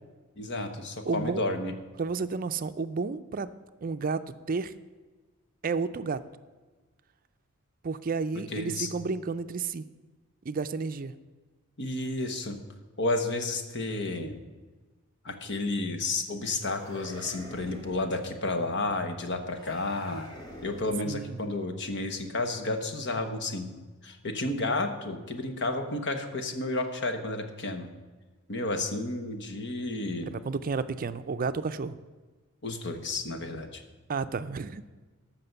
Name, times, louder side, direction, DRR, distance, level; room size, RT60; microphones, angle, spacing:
voice 1, 0.4-1.7 8.5-8.9 11.8-12.6 13.0-14.4 15.2-20.3 20.6-23.7 24.0-27.9 28.5-30.3 32.6-33.8, left 2 dB, 60° left, 7 dB, 1.2 m, -31 dB
voice 2, 1.1-1.5 2.0-3.5 3.8-4.2 4.5-4.7 5.6-6.2 7.8-9.8 10.4-11.1 21.0-21.4 30.2-32.0 34.1-34.8, right 4 dB, 40° right, 12 dB, 0.4 m, -31 dB
sound 1, 16.6-18.2 19.5-21.2, left 1 dB, 20° left, 2.2 m, -46 dB
14.0 x 6.0 x 6.7 m, 1.3 s
head